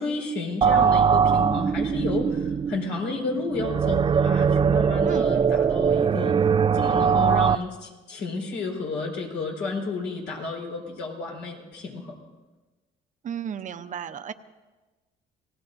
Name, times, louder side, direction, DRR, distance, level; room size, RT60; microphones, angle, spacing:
voice 1, 0.0-6.4 6.7-12.1, left 3 dB, 80° left, 0 dB, 4.6 m, -32 dB
sound 1, 0.6-7.6, right 6 dB, 30° right, 0.4 m, -21 dB
voice 2, 5.0-5.5 13.2-14.3, right 8 dB, 45° right, 9 dB, 0.8 m, -34 dB
28.5 x 18.0 x 2.7 m, 1.2 s
cardioid pair, 90°, 18 cm